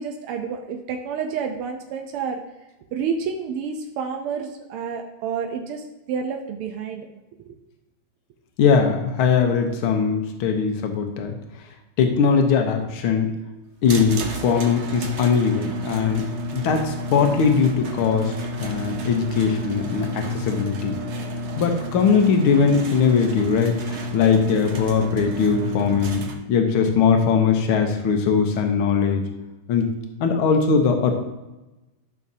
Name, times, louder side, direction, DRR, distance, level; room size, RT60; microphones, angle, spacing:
voice 1, 0.0-2.4 2.9-7.1 7.5-7.6, right 6 dB, 90° right, 3 dB, 1.7 m, -29 dB
voice 2, 8.6-11.3 12.0-13.3 13.8-16.2 16.5-18.3 18.6-20.9 21.6-29.2 29.7-29.9 30.2-31.1, left 6 dB, 75° left, 4 dB, 1.8 m, -20 dB
sound 1, 13.8-26.3, equal, 60° right, 0.7 m, -31 dB
12.5 x 5.7 x 2.7 m, 1.0 s
omnidirectional pair, 2.4 m